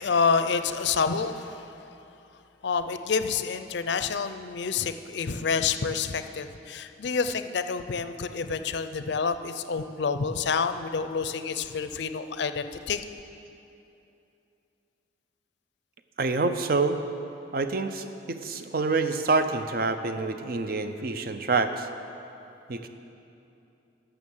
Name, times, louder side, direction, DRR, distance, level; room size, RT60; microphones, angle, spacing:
voice 1, 0.0-1.7 2.6-13.0, left 5 dB, 70° left, 10 dB, 0.5 m, -28 dB
voice 2, 16.2-17.0 17.5-21.9 22.7-22.9, right 3 dB, 50° right, 8 dB, 0.6 m, -27 dB
13.0 x 6.2 x 7.3 m, 2.8 s
head